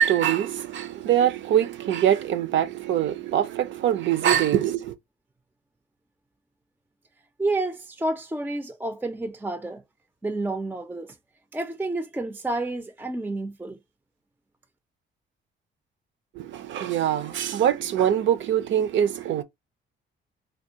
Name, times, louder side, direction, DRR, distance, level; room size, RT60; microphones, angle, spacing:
voice 1, 0.0-4.9 16.4-19.4, right 10 dB, 70° right, 0.5 m, -23 dB
voice 2, 7.4-9.8 10.2-11.1 11.5-13.8, right 2 dB, 10° right, 0.3 m, -30 dB
3.4 x 2.3 x 2.7 m
cardioid pair, 90°, 20 cm